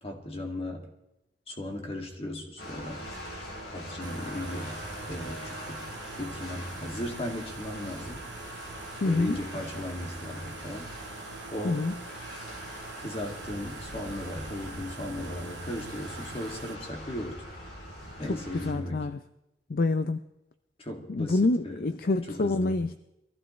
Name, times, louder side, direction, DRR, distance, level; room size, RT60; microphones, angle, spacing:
voice 1, 0.0-0.9 1.5-3.0 3.7-4.8 5.1-5.9 6.2-8.2 9.0-10.9 11.5-11.9 13.0-17.4 18.2-19.0 20.8-21.9 22.3-22.8, left 1 dB, 35° left, 2 dB, 2.2 m, -36 dB
sound 1, 2.6-18.7, equal, 70° left, 3.7 m, -42 dB
sound 2, 4.0-16.8, right 4 dB, 75° right, 1.3 m, -44 dB
voice 2, 9.0-9.4 11.6-11.9 18.3-19.2 19.7-20.2 21.1-23.0, left 2 dB, 50° left, 11 dB, 0.5 m, -27 dB
23.0 x 15.0 x 3.2 m, 0.89 s
head